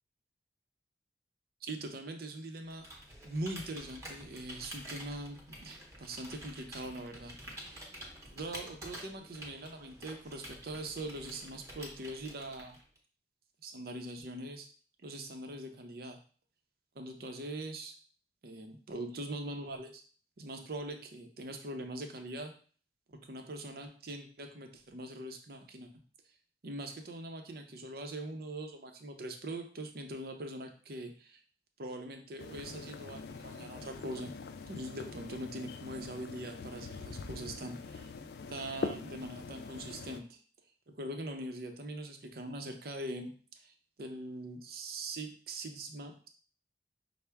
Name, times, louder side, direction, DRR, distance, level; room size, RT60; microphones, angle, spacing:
voice 1, 1.6-2.9 3.2-7.4 7.7-12.8 13.6-14.7 15.0-16.2 16.9-17.9 18.4-20.0 20.4-22.5 23.1-25.9 26.6-31.4 31.8-34.3 34.7-38.1 38.5-40.4 40.9-43.3 43.6-46.3, right 1 dB, 60° right, 5 dB, 0.6 m, -42 dB
Computer keyboard, 2.7-13.0, right 1 dB, 15° right, 0.9 m, -49 dB
sound 1, 32.4-40.2, left 4 dB, 60° left, 0.3 m, -43 dB
5.5 x 2.1 x 3.4 m, 0.42 s
head